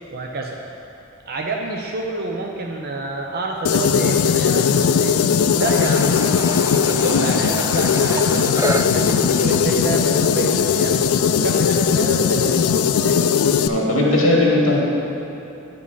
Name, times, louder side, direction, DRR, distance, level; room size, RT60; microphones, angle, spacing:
voice 1, 0.1-0.6 1.3-5.2 5.6-6.1 6.5-11.0 11.3-12.7 13.0-13.4, right 3 dB, 50° right, 0 dB, 0.6 m, -28 dB
sound 1, 3.6-13.7, left 7 dB, 90° left, 0.4 m, -18 dB
sound 2, 5.6-12.1, right 2 dB, 15° right, 0.3 m, -31 dB
voice 2, 13.6-14.8, left 1 dB, 70° left, -3 dB, 1.9 m, -17 dB
9.9 x 5.1 x 5.5 m, 3.0 s
head